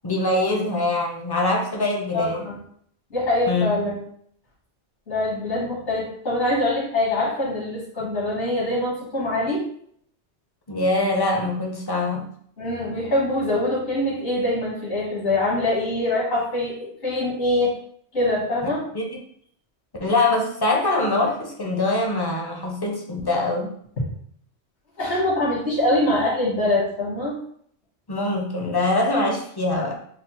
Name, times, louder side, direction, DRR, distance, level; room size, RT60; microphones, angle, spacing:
voice 1, 0.0-2.5 3.5-3.7 10.7-12.3 18.9-19.0 20.0-23.7 28.1-30.0, left 2 dB, 35° left, 1 dB, 0.4 m, -23 dB
voice 2, 2.1-2.6 3.1-4.0 5.1-9.7 12.6-17.8 18.1-18.9 24.0-24.1 25.0-27.4, left 1 dB, 80° left, -6 dB, 1.7 m, -24 dB
5.8 x 2.0 x 2.9 m, 0.63 s
omnidirectional pair, 1.1 m